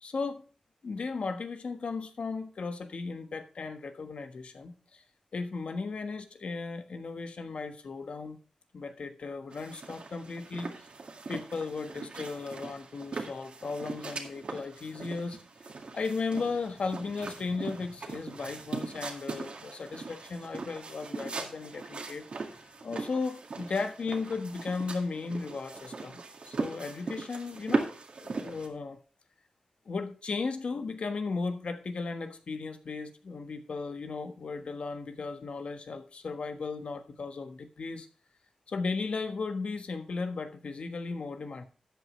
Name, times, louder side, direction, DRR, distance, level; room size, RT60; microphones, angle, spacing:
voice 1, 0.0-0.4 0.8-5.0 5.3-8.4 8.7-10.7 11.3-15.4 15.9-22.2 22.6-27.9 28.2-29.0 29.9-38.1 38.7-41.6, left 4 dB, 70° left, 8 dB, 1.3 m, -36 dB
sound 1, 9.5-28.7, right 4 dB, 65° right, 1.9 m, -39 dB
13.0 x 8.2 x 3.2 m, 0.38 s
wide cardioid pair, 95°, 2 cm